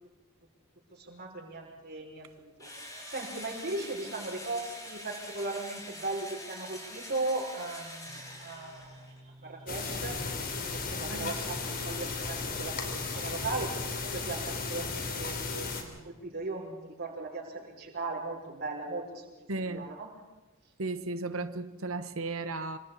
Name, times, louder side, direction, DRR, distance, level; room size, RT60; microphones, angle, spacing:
voice 1, 0.9-2.3 2.6-2.7 3.1-9.1 9.4-10.2 10.6-13.8 14.0-19.2 19.6-20.1, right 2 dB, 50° right, -4 dB, 6.1 m, -38 dB
Engine / Drill, 2.6-9.2, left 1 dB, 15° left, 7.0 m, -45 dB
sound 1, 8.1-13.5, right 1 dB, 35° right, 5.2 m, -54 dB
sound 2, 9.7-15.8, left 4 dB, 45° left, 3.5 m, -35 dB
voice 2, 19.5-19.9 20.8-22.8, right 3 dB, 75° right, 11 dB, 1.2 m, -35 dB
26.5 x 26.5 x 4.2 m, 1.1 s
head